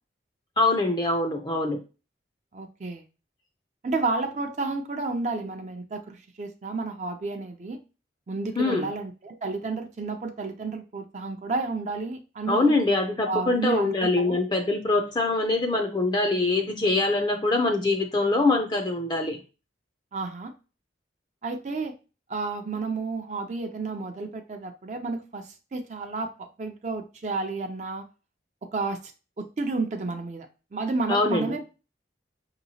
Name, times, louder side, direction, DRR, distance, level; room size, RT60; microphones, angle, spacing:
voice 1, 0.6-1.8 8.6-8.9 12.5-19.4 31.1-31.5, left 2 dB, 25° left, 4 dB, 0.4 m, -24 dB
voice 2, 2.5-3.0 3.8-7.8 8.3-12.7 13.3-14.4 20.1-20.5 21.4-21.9 22.3-26.3 26.6-28.0 28.7-29.0 29.4-31.6, right 3 dB, 40° right, 5 dB, 0.4 m, -31 dB
5.4 x 2.9 x 2.7 m, 0.32 s
head